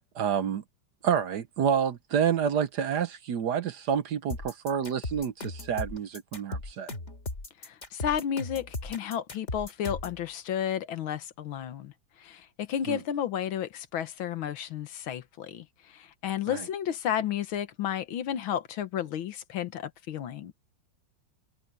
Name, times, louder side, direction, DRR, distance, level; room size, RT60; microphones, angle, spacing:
voice 1, 0.1-0.6 1.0-6.9 12.9-13.0 16.5-16.6, right 8 dB, 60° right, 1.3 m, -28 dB
sound 1, 4.3-10.2, left 2 dB, 35° left, 3.6 m, -37 dB
voice 2, 7.6-11.9 12.2-20.5, left 9 dB, 75° left, 1.8 m, -32 dB
omnidirectional pair, 2.2 m